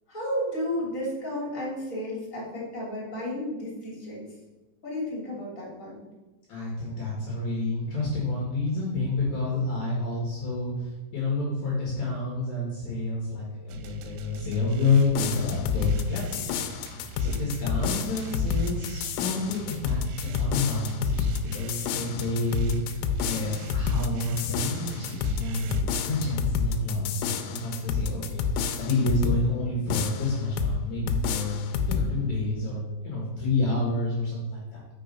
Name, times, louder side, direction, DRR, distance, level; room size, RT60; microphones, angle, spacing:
voice 1, 0.1-4.3 4.8-6.0, left 1 dB, 25° left, -5 dB, 2.0 m, -32 dB
voice 2, 6.5-16.6 16.8-31.6 31.9-34.8, left 3 dB, 65° left, -3 dB, 1.8 m, -29 dB
sound 1, 13.7-25.8, right 3 dB, 85° right, 3.2 m, -43 dB
sound 2, 15.1-29.4 29.9-30.8 31.1-32.1, left 6 dB, 85° left, 2.9 m, -29 dB
6.7 x 6.3 x 5.3 m, 1.1 s
omnidirectional pair, 5.9 m